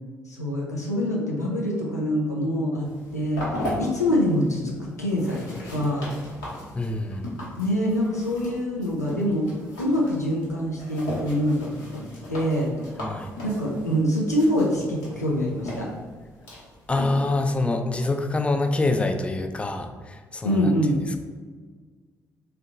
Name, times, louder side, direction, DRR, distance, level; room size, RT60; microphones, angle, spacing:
voice 1, 0.3-6.1 7.6-9.5 9.8-12.0 12.3-12.7 13.4-15.9 20.4-20.9, equal, 90° left, -3 dB, 0.5 m, -25 dB
sound 1, 2.8-17.5, left 1 dB, 70° left, 1.1 m, -37 dB
voice 2, 6.7-7.3 13.0-13.3 16.9-20.7, left 2 dB, 15° left, 6 dB, 0.4 m, -26 dB
3.6 x 2.2 x 3.7 m, 1.5 s
figure-of-eight pair, 40°, 9 cm